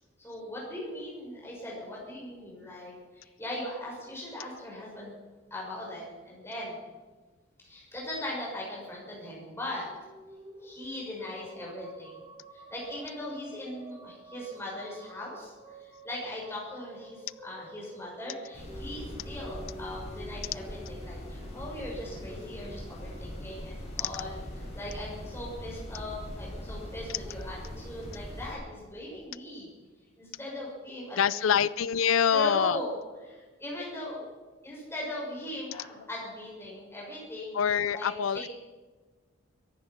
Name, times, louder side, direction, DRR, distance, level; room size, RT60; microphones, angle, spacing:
voice 1, 0.2-5.2 5.5-6.8 7.6-9.9 10.6-12.2 12.5-24.4 24.7-29.7 30.2-31.6 32.3-33.0 33.2-34.3 34.6-37.6 37.9-38.5, left 1 dB, 15° left, -4 dB, 6.2 m, -39 dB
sound 1, 9.6-24.0, right 1 dB, 20° right, 1.7 m, -51 dB
sound 2, 18.5-28.5, equal, 35° left, 5.9 m, -41 dB
voice 2, 31.2-32.8 35.7-35.8 37.5-38.5, left 7 dB, 90° left, 19 dB, 0.4 m, -25 dB
22.5 x 10.5 x 5.9 m, 1.3 s
head